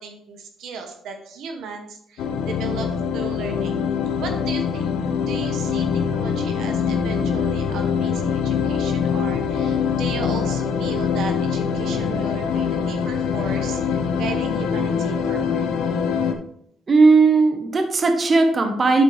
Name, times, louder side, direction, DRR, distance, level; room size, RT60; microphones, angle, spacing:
voice 1, 0.0-3.8 4.2-4.9 5.2-15.7, right 5 dB, 80° right, 4 dB, 1.2 m, -36 dB
sound 1, 2.2-16.3, left 6 dB, 90° left, 0.9 m, -23 dB
voice 2, 16.9-19.0, right 4 dB, 40° right, 5 dB, 1.2 m, -16 dB
11.0 x 4.5 x 3.4 m, 0.68 s
cardioid pair, 90°, 0 cm